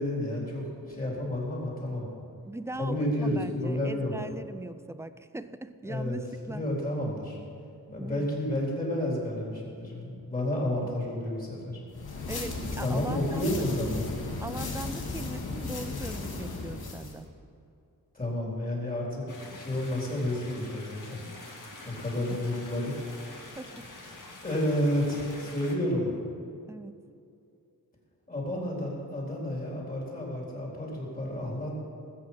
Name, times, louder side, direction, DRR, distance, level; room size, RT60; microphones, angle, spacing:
voice 1, 0.0-2.1 2.8-4.1 5.8-6.2 6.4-7.4 7.9-11.8 12.8-14.1 18.1-21.2 21.8-22.9 24.4-26.1 28.3-31.8, left 1 dB, 25° left, -4 dB, 3.8 m, -31 dB
voice 2, 2.5-6.6 8.0-8.3 10.8-10.9 12.3-13.5 14.4-17.3 23.6-23.9 26.7-26.9, right 2 dB, 10° right, 12 dB, 0.3 m, -40 dB
sound 1, 11.9-17.2, left 3 dB, 85° left, 1.9 m, -35 dB
sound 2, 19.3-25.8, left 2 dB, 55° left, 2.1 m, -46 dB
20.0 x 8.5 x 5.7 m, 2.6 s
wide cardioid pair, 175°, 36 cm